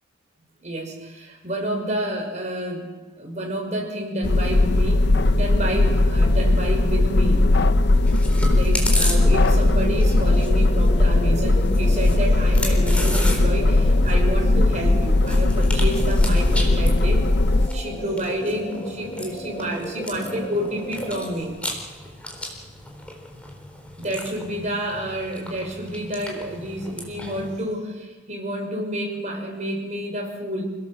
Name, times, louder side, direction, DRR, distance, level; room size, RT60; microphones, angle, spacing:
voice 1, 0.6-2.9 3.2-7.5 8.4-17.2 17.7-21.6 24.0-30.6, right 1 dB, 35° right, 1 dB, 6.1 m, -29 dB
sound 1, 4.2-17.7, left 2 dB, 55° left, 0.8 m, -18 dB
Chewing mastication, 8.0-27.6, left 1 dB, 5° left, 3.8 m, -35 dB
sound 2, 8.9-21.4, equal, 30° left, 2.8 m, -36 dB
28.0 x 18.0 x 7.5 m, 1.3 s
head